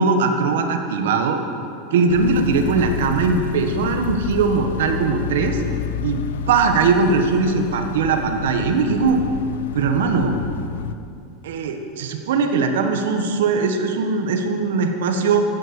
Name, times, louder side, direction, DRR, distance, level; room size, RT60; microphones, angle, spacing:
voice 1, 0.0-1.4 1.9-5.6 6.0-6.2 6.5-9.2 9.7-10.4 11.4-15.4, right 4 dB, 85° right, 5 dB, 1.5 m, -20 dB
sound 1, 2.1-10.9, left 8 dB, 90° left, 0.6 m, -30 dB
14.0 x 10.0 x 6.8 m, 2.5 s
supercardioid pair, 125°, 0 cm